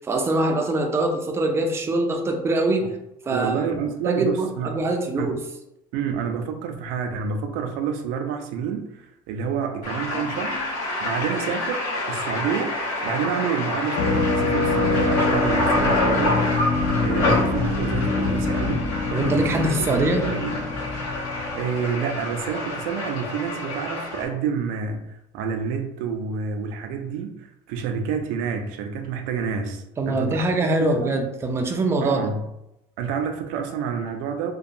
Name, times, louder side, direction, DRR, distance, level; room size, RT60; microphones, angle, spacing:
voice 1, 0.0-2.9 3.3-3.5 4.0-5.4 19.1-20.3 30.0-32.2, right 2 dB, 20° right, 0.4 m, -23 dB
voice 2, 3.3-4.8 5.2-5.4 5.9-10.6 11.0-12.8 13.0-16.4 17.0-18.9 19.3-20.6 21.5-30.5 30.8-31.2 32.0-32.4 33.0-34.5, right 6 dB, 80° right, 0.4 m, -28 dB
sound 1, 9.8-24.3, left 2 dB, 75° left, 1.0 m, -27 dB
sound 2, 14.0-22.6, left 3 dB, 55° left, 0.4 m, -25 dB
2.7 x 2.2 x 2.5 m
cardioid pair, 120°, 14 cm